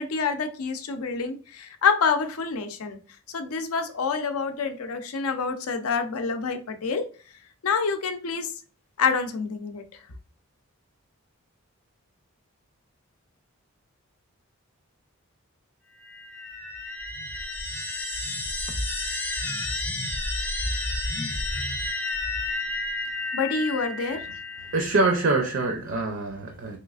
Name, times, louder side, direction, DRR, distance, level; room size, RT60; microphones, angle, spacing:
voice 1, 0.0-3.0 3.3-7.1 7.6-8.5 9.0-9.8 23.3-24.2, left 5 dB, 80° left, 0.5 m, -27 dB
sound 1, 16.0-25.3, left 2 dB, 10° left, 0.3 m, -31 dB
voice 2, 24.7-26.8, right 3 dB, 55° right, 0.5 m, -25 dB
3.2 x 3.0 x 2.3 m
head